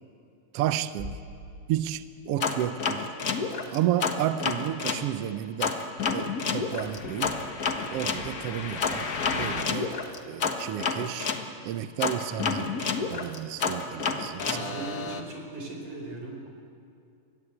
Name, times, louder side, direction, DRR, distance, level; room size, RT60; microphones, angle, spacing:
voice 1, 0.5-1.2 1.7-3.0 3.7-5.8 6.1-7.3 7.9-9.1 9.3-9.9 10.2-11.3 11.6-14.7, right 11 dB, 85° right, 12 dB, 1.3 m, -31 dB
Bass drum, 1.0-2.7, left 1 dB, 15° right, 3.2 m, -43 dB
sound 1, 2.4-5.0 5.6-11.4 12.0-15.2, left 5 dB, 65° left, 0.8 m, -29 dB
voice 2, 14.5-16.5, right 2 dB, 60° right, 1 dB, 6.2 m, -38 dB
27.0 x 22.0 x 8.2 m, 2.5 s
omnidirectional pair, 3.9 m